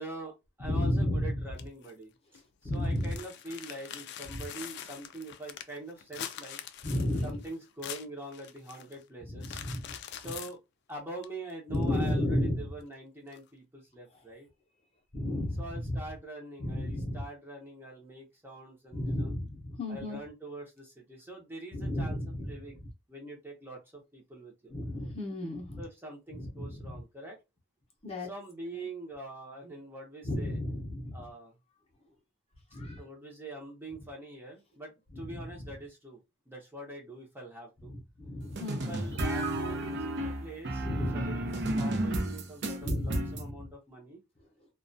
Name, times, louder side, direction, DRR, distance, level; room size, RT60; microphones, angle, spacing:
voice 1, 0.0-2.4 2.7-6.6 7.2-9.6 10.1-10.6 10.9-14.5 15.6-19.3 19.9-22.2 22.4-22.8 23.1-24.7 25.8-27.4 28.2-30.6 31.1-31.5 33.0-36.2 36.5-37.9 38.9-40.9 41.1-44.2, right 2 dB, 10° right, 0.6 m, -44 dB
voice 2, 0.6-1.5 2.6-3.2 4.3-4.4 6.8-7.4 9.2-10.0 10.2-10.3 11.7-12.7 15.1-16.0 16.6-17.2 18.9-20.2 21.7-22.8 24.7-25.8 26.3-27.0 28.0-28.3 28.7-28.9 30.2-31.2 32.7-33.0 35.1-35.7 37.9-39.6 40.8-41.7 42.8-43.7, left 1 dB, 30° left, 0.7 m, -33 dB
sound 1, 1.6-1.9 2.3-2.4 2.7-9.0 9.4-10.5 11.2-11.3 11.7-12.4 13.3-13.4, left 10 dB, 55° left, 0.3 m, -44 dB
sound 2, 38.6-43.4, right 1 dB, 55° right, 0.5 m, -32 dB
2.3 x 2.2 x 2.5 m
head